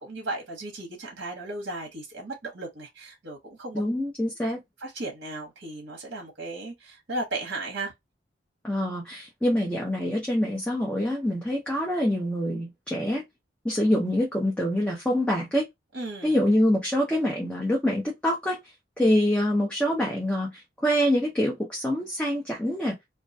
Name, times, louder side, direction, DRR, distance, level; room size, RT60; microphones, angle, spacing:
voice 1, 0.1-3.8 4.8-7.9 15.9-16.4, right 2 dB, 60° right, 0.8 m, -35 dB
voice 2, 3.7-4.6 8.6-13.2 13.6-15.7 16.2-18.6 19.0-22.9, equal, 5° left, 0.5 m, -25 dB
2.3 x 2.1 x 2.5 m
head